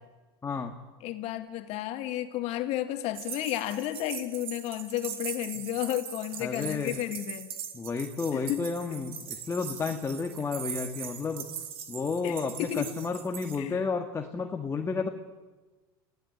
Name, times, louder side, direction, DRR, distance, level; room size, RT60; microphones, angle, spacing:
voice 1, 0.4-0.8 6.4-7.0 7.7-11.5 11.9-15.1, left 4 dB, 20° left, 4 dB, 1.9 m, -32 dB
voice 2, 1.0-7.5 8.3-8.6 8.9-9.0 12.2-12.9 13.6-13.8, left 13 dB, 55° left, 8 dB, 2.3 m, -32 dB
sound 1, 3.1-13.6, right 8 dB, 45° right, 3.5 m, -41 dB
27.5 x 16.0 x 9.3 m, 1.3 s
hypercardioid pair, 95°, 13 cm